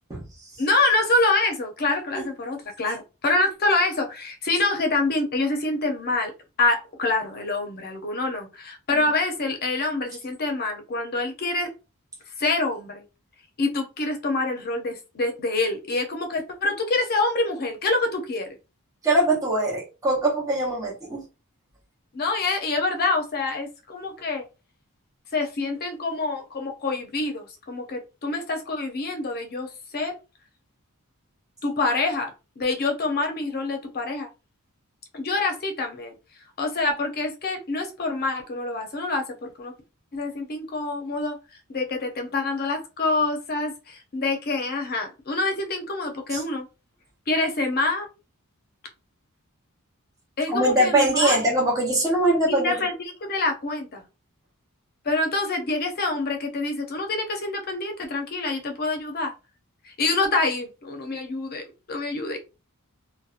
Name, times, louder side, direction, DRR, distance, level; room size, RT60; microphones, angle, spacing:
voice 1, 0.6-6.3 6.6-11.7 12.4-13.0 13.6-18.5 22.1-24.4 25.3-30.1 31.6-34.3 35.1-36.1 36.6-39.7 40.1-41.4 41.7-46.7 47.3-48.1 50.4-51.4 52.5-52.9 53.2-54.0 55.0-59.3 59.8-62.4, left 2 dB, 45° left, 0.6 m, -26 dB
voice 2, 19.0-21.2 46.3-46.4 50.5-52.7, right 1 dB, 15° right, 0.9 m, -22 dB
2.7 x 2.1 x 2.4 m
head